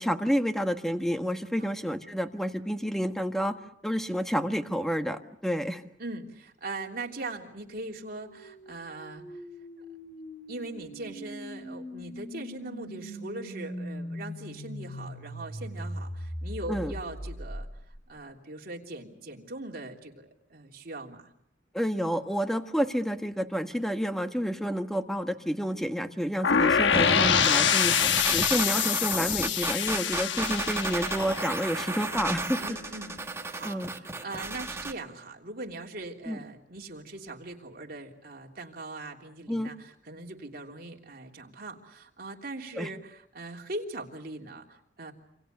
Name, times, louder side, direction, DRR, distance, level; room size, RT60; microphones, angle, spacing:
voice 1, 0.0-3.6 3.8-5.8 16.7-16.9 21.7-27.9 28.3-32.8 33.6-33.9 36.3-36.4 39.5-39.7 42.8-42.9, equal, ahead, 7 dB, 1.4 m, -29 dB
voice 2, 6.0-9.4 9.8-9.9 10.5-17.7 18.1-21.3 32.6-45.1, right 2 dB, 55° right, 1 dB, 3.3 m, -41 dB
sound 1, 8.1-18.2, equal, 45° left, 5.7 m, -40 dB
sound 2, 26.4-32.3, left 7 dB, 80° left, 1.1 m, -25 dB
sound 3, 26.9-34.9, right 2 dB, 15° right, 1.5 m, -33 dB
28.0 x 26.5 x 6.7 m, 0.71 s
head